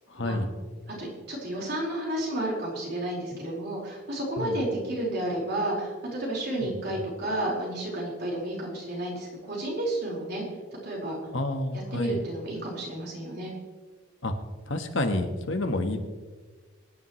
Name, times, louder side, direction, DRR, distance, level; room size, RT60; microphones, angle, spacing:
voice 1, 0.1-0.5 4.4-4.6 6.6-6.7 11.3-12.2 14.2-14.3 14.7-16.0, left 1 dB, 60° left, 6 dB, 1.4 m, -29 dB
voice 2, 1.0-10.4 10.8-11.2 11.9-13.5, right 1 dB, 50° right, -3 dB, 4.8 m, -31 dB
24.5 x 10.5 x 3.2 m, 1.4 s
head